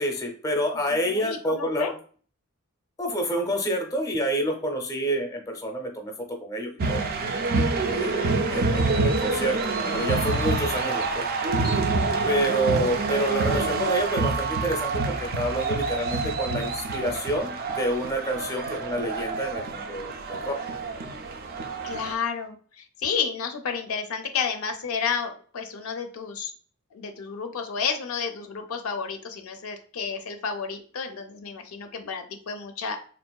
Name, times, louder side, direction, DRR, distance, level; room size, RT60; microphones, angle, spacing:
voice 1, 0.0-1.9 3.0-6.1 6.4-7.0 7.9-9.6 9.9-11.3 11.7-11.9 12.3-20.6, right 1 dB, 15° left, 2 dB, 0.6 m, -28 dB
voice 2, 0.7-1.9 7.8-8.4 21.8-26.5 26.9-33.0, left 6 dB, 80° left, 6 dB, 0.4 m, -31 dB
sound 1, 6.8-22.1, right 3 dB, 45° right, 0.4 m, -27 dB
3.7 x 2.5 x 2.2 m, 0.43 s
head